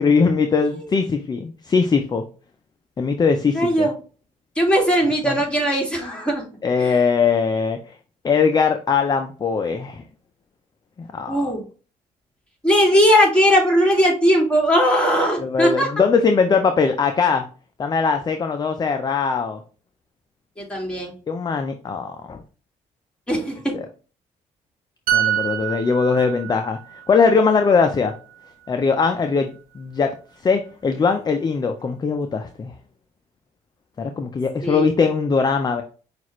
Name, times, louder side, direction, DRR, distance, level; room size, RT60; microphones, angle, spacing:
voice 1, 0.0-2.2 3.0-3.9 5.0-5.4 6.6-7.9 8.2-10.0 11.0-11.5 15.4-17.5 17.8-19.6 21.3-22.4 23.7-23.9 25.1-26.8 27.1-28.1 28.7-30.1 30.4-32.7 34.0-35.8, left 5 dB, 30° left, 6 dB, 0.5 m, -20 dB
voice 2, 3.5-3.9 4.6-6.4 6.8-6.9 11.3-11.6 12.6-15.9 20.6-21.1 23.3-23.7 34.6-34.9, equal, 5° left, -2 dB, 2.2 m, -18 dB
sound 1, 25.1-28.7 29.0-29.2, right 12 dB, 80° right, 0.6 m, -27 dB
5.9 x 2.4 x 3.0 m, 0.37 s
cardioid pair, 80°, 15 cm